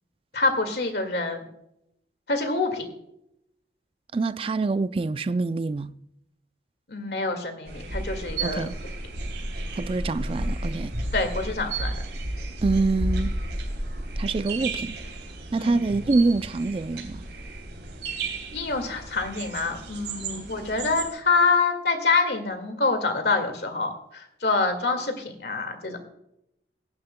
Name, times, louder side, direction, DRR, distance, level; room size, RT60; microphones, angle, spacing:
voice 1, 0.3-1.4 2.3-2.9 6.9-8.7 11.1-11.9 15.6-15.8 18.5-26.0, left 3 dB, 70° left, 2.0 m, -26 dB
voice 2, 4.1-5.9 8.4-8.8 9.8-10.9 12.6-13.3 14.2-15.0 15.5-17.2 20.2-20.5, right 3 dB, 30° right, 0.3 m, -25 dB
sound 1, 7.7-21.1, right 2 dB, 75° right, 3.4 m, -32 dB
18.0 x 10.5 x 2.2 m
head